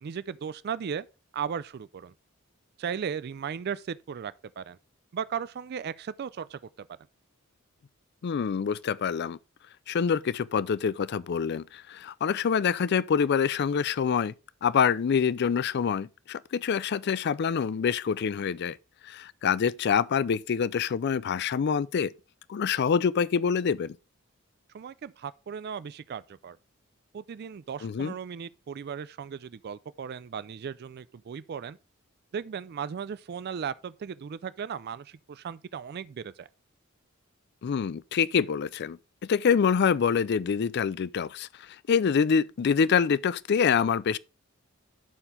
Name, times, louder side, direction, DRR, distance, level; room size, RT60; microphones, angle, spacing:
voice 1, 0.0-1.1 1.3-2.1 2.8-4.8 5.1-6.9 24.7-26.6 27.1-31.8 32.3-36.5, right 7 dB, 50° right, 0.4 m, -36 dB
voice 2, 8.2-9.4 9.9-14.3 14.6-18.8 19.0-22.1 22.5-24.0 27.8-28.1 37.6-39.0 39.3-41.5 41.9-44.2, left 6 dB, 55° left, 0.4 m, -26 dB
11.0 x 4.5 x 3.7 m
head